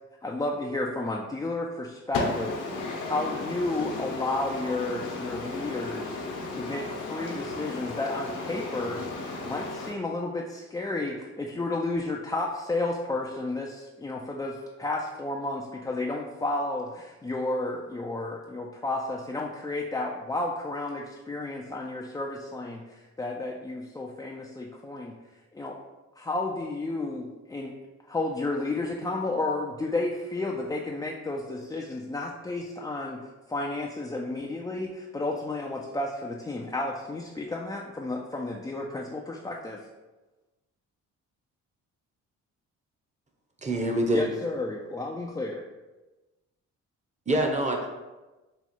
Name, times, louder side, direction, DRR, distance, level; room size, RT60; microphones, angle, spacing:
voice 1, 0.2-2.5 3.1-6.2 6.5-9.0 9.4-25.1 25.5-25.8 26.2-27.8 28.1-33.2 33.5-39.8 44.1-45.6, left 2 dB, 15° left, -2 dB, 0.3 m, -32 dB
voice 2, 2.1-9.9, left 3 dB, 80° left, -1 dB, 1.0 m, -34 dB
voice 3, 43.6-44.3 47.3-47.9, right 1 dB, 25° right, 2 dB, 0.8 m, -25 dB
4.2 x 2.3 x 4.3 m, 1.1 s
cardioid pair, 90°, 30 cm